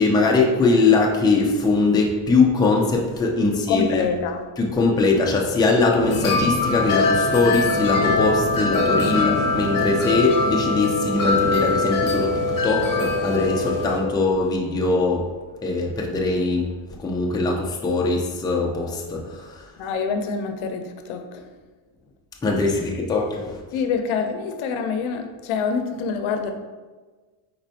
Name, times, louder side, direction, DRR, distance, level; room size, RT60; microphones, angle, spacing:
voice 1, 0.0-4.0 4.6-15.3 15.6-16.7 17.0-19.7 22.4-23.6, left 3 dB, 10° left, -1 dB, 0.4 m, -21 dB
voice 2, 3.7-4.4 19.8-21.4 23.7-26.5, left 5 dB, 75° left, 7 dB, 0.7 m, -26 dB
sound 1, 6.0-14.0, left 3 dB, 40° left, 0.9 m, -22 dB
4.5 x 4.1 x 2.7 m, 1.3 s
cardioid pair, 125°, 50 cm